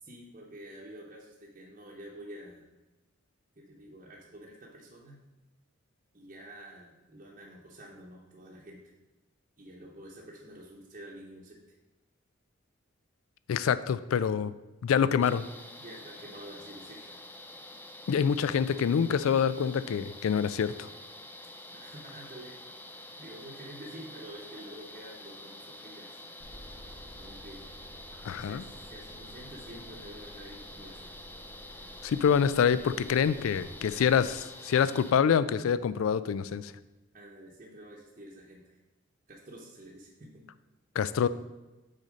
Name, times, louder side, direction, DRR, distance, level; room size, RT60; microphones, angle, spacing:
voice 1, 0.0-2.7 3.6-5.2 6.1-8.8 9.6-11.8 15.8-17.2 21.7-22.6 23.2-26.2 27.2-27.6 28.4-31.1 37.1-38.8 39.3-40.5, right 1 dB, 35° right, -4 dB, 0.8 m, -48 dB
voice 2, 13.5-14.5 14.8-15.5 18.1-20.9 28.2-28.6 32.0-36.7 41.0-41.3, left 7 dB, 85° left, 15 dB, 0.3 m, -26 dB
sound 1, 15.2-35.1, left 1 dB, 10° left, 0.3 m, -47 dB
sound 2, 26.4-34.4, equal, 50° left, 2.0 m, -51 dB
6.4 x 4.2 x 5.0 m, 1.1 s
head